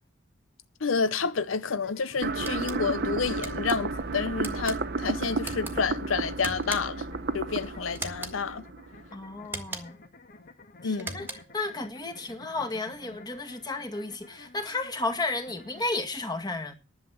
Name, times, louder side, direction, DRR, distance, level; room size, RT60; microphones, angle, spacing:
voice 1, 0.8-7.0 7.3-8.6 10.8-11.2, left 5 dB, 85° left, 0.7 m, -29 dB
sound 1, 1.1-15.9, left 3 dB, 50° left, 1.6 m, -52 dB
sound 2, 2.2-9.2, right 3 dB, 55° right, 1.0 m, -32 dB
sound 3, 2.4-2.8 3.4-3.8 4.4-4.8 5.4-5.7 6.4-7.0 7.9-8.4 9.4-10.0 10.9-11.6, right 2 dB, 10° right, 1.7 m, -38 dB
voice 2, 9.1-10.0 10.8-16.7, left 2 dB, 20° left, 2.0 m, -33 dB
11.0 x 7.4 x 7.7 m
head